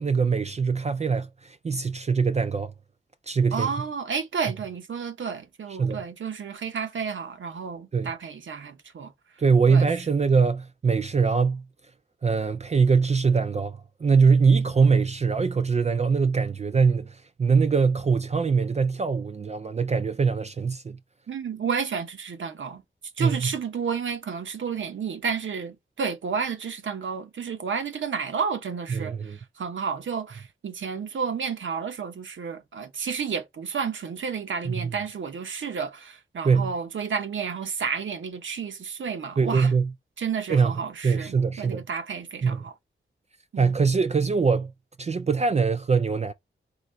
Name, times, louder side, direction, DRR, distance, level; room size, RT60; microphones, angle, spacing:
voice 1, 0.0-2.7 3.3-3.7 5.8-6.0 7.9-8.1 9.4-11.6 12.2-21.0 23.2-23.5 28.9-29.4 34.7-34.9 36.4-36.7 39.4-39.9 40.5-40.7 41.0-41.8 42.4-42.6 43.6-44.7 45.0-46.3, right 5 dB, 35° right, 0.4 m, -22 dB
voice 2, 3.5-9.1 9.7-9.9 21.3-22.8 23.2-39.7 40.2-42.7 43.5-43.8, right 6 dB, 75° right, 0.7 m, -31 dB
4.0 x 2.8 x 4.4 m
wide cardioid pair, 110°, 20 cm